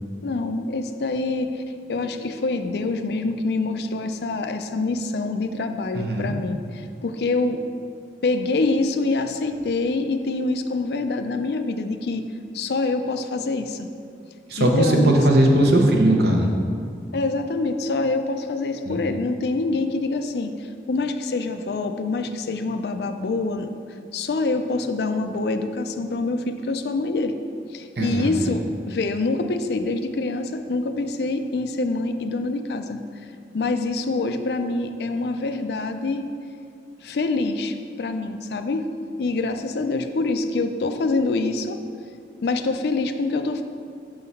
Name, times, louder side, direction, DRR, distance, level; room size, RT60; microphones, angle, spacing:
voice 1, 0.2-1.6 1.9-7.6 8.2-12.2 12.5-13.9 14.6-15.1 17.1-23.7 24.1-27.3 27.7-33.0 33.5-36.3 37.0-38.9 39.2-41.8 42.4-43.6, left 3 dB, 65° left, 8 dB, 0.4 m, -25 dB
voice 2, 5.9-6.4 14.5-16.5 18.9-19.0 28.0-28.5, right 1 dB, 65° right, 1 dB, 0.8 m, -19 dB
6.0 x 3.8 x 5.5 m, 2.4 s
head